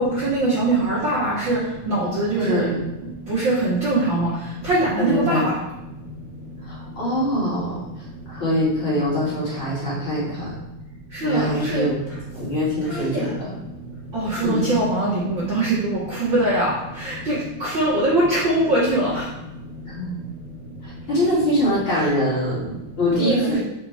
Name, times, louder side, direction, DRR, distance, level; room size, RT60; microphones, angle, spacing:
voice 1, 0.0-1.6 1.9-2.6 3.3-4.3 4.6-5.4 11.2-11.8 12.9-13.2 14.1-16.7 17.0-17.3 17.6-19.2 23.2-23.5, right 2 dB, 80° right, -10 dB, 1.0 m, -22 dB
voice 2, 2.4-2.8 5.0-5.4 6.6-10.5 11.2-12.0 12.3-13.6 14.4-14.7 19.8-20.2 20.8-23.6, equal, 35° left, -8 dB, 2.4 m, -24 dB
5.9 x 5.3 x 3.5 m, 0.96 s
omnidirectional pair, 5.0 m